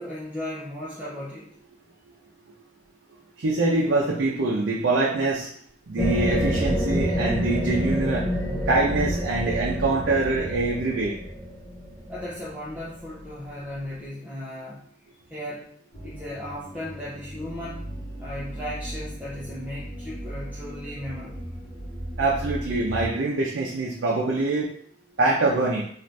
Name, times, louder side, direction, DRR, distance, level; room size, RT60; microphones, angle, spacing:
voice 1, 0.0-1.5 12.1-14.8 15.3-15.7 16.0-21.5, left 1 dB, 10° right, -9 dB, 0.5 m, -36 dB
voice 2, 3.4-5.5 5.9-8.3 8.7-11.2 22.2-24.7 25.2-25.8, right 2 dB, 85° right, -3 dB, 0.5 m, -24 dB
sound 1, 6.0-13.2, equal, 20° left, 0.8 m, -27 dB
sound 2, 15.9-23.1, right 1 dB, 45° left, 1.0 m, -37 dB
2.6 x 2.4 x 3.2 m, 0.62 s
head